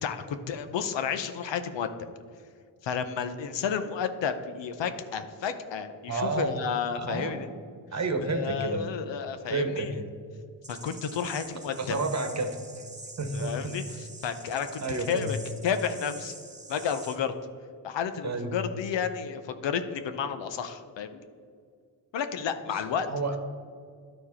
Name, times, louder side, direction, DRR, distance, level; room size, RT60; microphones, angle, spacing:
voice 1, 0.0-1.9 2.8-7.5 8.2-10.0 10.7-12.0 13.3-15.4 15.6-16.3 16.7-17.3 17.8-21.3 22.1-23.1, left 7 dB, 70° left, 9 dB, 0.7 m, -31 dB
voice 2, 6.1-6.6 6.9-7.5 7.9-8.8 9.5-10.1 11.8-12.6 13.2-13.7 14.8-15.3 18.2-18.6 22.7-22.8 23.1-23.4, right 3 dB, 35° right, 6 dB, 1.2 m, -30 dB
sound 1, 10.6-17.2, right 2 dB, 15° right, 1.3 m, -46 dB
11.0 x 4.5 x 4.3 m, 2.2 s
supercardioid pair, 55°, 46 cm